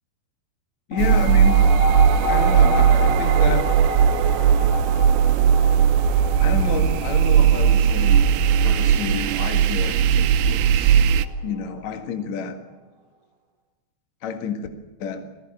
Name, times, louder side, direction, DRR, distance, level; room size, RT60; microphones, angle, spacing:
voice 1, 0.9-1.7 2.3-3.7 6.4-8.3 8.6-11.0 11.4-12.6 14.2-14.7 15.0-15.2, left 6 dB, 50° left, 6 dB, 2.6 m, -29 dB
sound 1, 0.9-11.8, right 2 dB, 55° right, 2.9 m, -29 dB
Creepy Ambience, 1.0-11.3, right 8 dB, 90° right, 3.0 m, -18 dB
21.0 x 16.5 x 8.8 m, 1.2 s
omnidirectional pair, 4.8 m